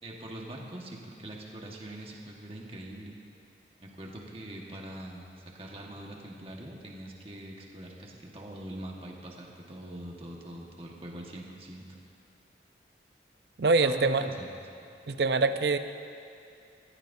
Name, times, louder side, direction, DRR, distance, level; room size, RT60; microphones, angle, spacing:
voice 1, 0.0-3.1 3.8-11.8 13.8-14.5, right 1 dB, 30° right, -1 dB, 1.5 m, -43 dB
voice 2, 13.6-14.3 15.1-15.8, right 3 dB, 65° right, 9 dB, 0.6 m, -24 dB
22.5 x 15.0 x 2.7 m, 2.5 s
head